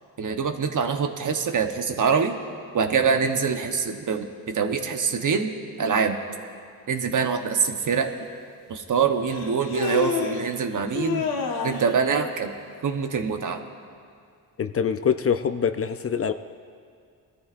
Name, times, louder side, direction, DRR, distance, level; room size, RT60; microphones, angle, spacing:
voice 1, 0.2-2.4 2.7-5.5 5.8-6.2 6.9-8.1 8.7-11.3 11.6-12.5 12.8-13.6, right 6 dB, 50° right, 6 dB, 1.1 m, -24 dB
Human voice, 7.9-8.0 9.3-10.5 10.9-12.0, left 5 dB, 65° left, 1.4 m, -28 dB
voice 2, 14.6-16.3, left 7 dB, 35° left, 9 dB, 0.5 m, -24 dB
20.0 x 13.0 x 2.5 m, 2.3 s
cardioid pair, 85°, 38 cm